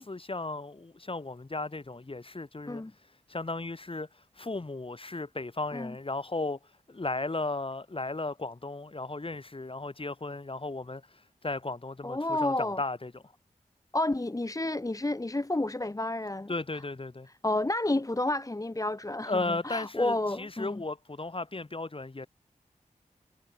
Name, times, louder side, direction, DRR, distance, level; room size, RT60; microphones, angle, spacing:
voice 1, 0.0-2.8 3.3-4.1 4.4-6.6 6.9-13.2 16.5-17.3 19.3-22.3, left 2 dB, 40° left, 2.3 m, -35 dB
voice 2, 12.0-12.8 13.9-16.5 17.4-20.8, left 2 dB, 25° left, 1.1 m, -30 dB
wide cardioid pair, 55°, 14 cm